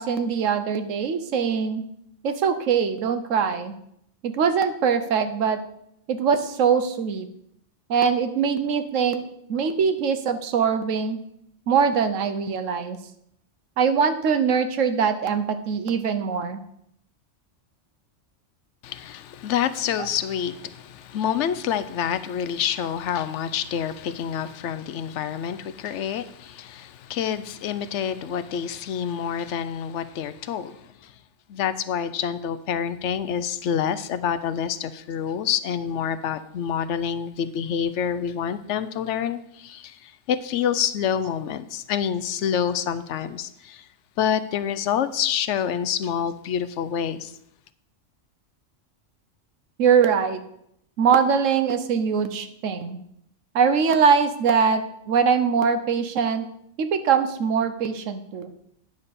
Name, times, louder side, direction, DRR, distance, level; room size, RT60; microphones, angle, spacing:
voice 1, 0.0-1.8 2.2-3.8 4.2-5.6 6.1-7.3 7.9-9.2 9.5-11.2 11.7-13.0 13.8-16.6 49.8-50.4 51.0-53.0 53.5-56.5 56.8-58.5, right 6 dB, 85° right, 1.2 m, -22 dB
voice 2, 18.8-31.1 31.5-43.9 44.2-47.3, left 8 dB, 75° left, 0.9 m, -27 dB
9.6 x 4.3 x 6.7 m
omnidirectional pair, 1.3 m